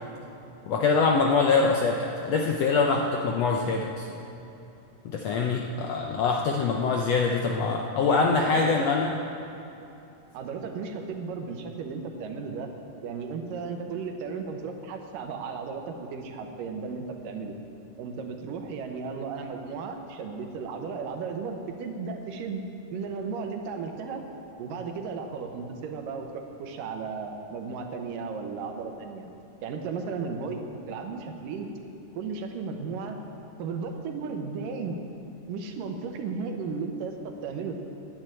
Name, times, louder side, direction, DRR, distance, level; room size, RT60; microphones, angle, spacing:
voice 1, 0.7-4.1 5.0-9.1, left 4 dB, 75° left, 1 dB, 1.5 m, -24 dB
voice 2, 8.0-8.9 10.3-12.7 13.0-17.6 18.0-22.6 22.9-24.2 24.6-29.3 29.6-31.7 32.1-33.2 33.6-35.0 35.5-37.7, right 5 dB, 85° right, 4 dB, 2.7 m, -35 dB
11.0 x 9.6 x 8.9 m, 2.8 s
omnidirectional pair, 3.8 m